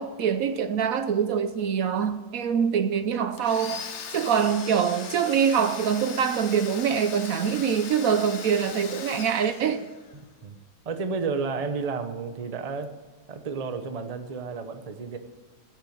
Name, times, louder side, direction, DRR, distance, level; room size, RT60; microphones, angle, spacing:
voice 1, 0.0-9.9, right 7 dB, 65° right, 1.0 m, -24 dB
Domestic sounds home sounds, 3.4-10.2, left 6 dB, 55° left, 1.1 m, -39 dB
voice 2, 10.8-12.9 13.3-15.2, right 4 dB, 30° right, 0.7 m, -31 dB
15.0 x 6.7 x 8.5 m
omnidirectional pair, 1.7 m